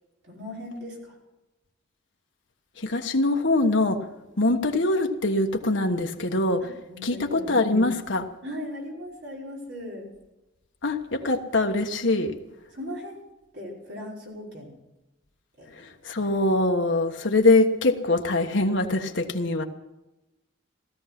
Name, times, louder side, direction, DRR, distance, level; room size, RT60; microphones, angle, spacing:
voice 1, 0.2-1.2 6.6-7.6 8.4-10.1 12.7-13.2 13.5-14.7 15.6-15.7, left 1 dB, 60° right, -3 dB, 5.5 m, -38 dB
voice 2, 2.8-4.0 4.4-6.6 7.0-8.3 10.8-12.4 15.7-19.6, left 2 dB, 70° left, 3 dB, 1.3 m, -23 dB
16.5 x 13.5 x 6.0 m, 0.99 s
head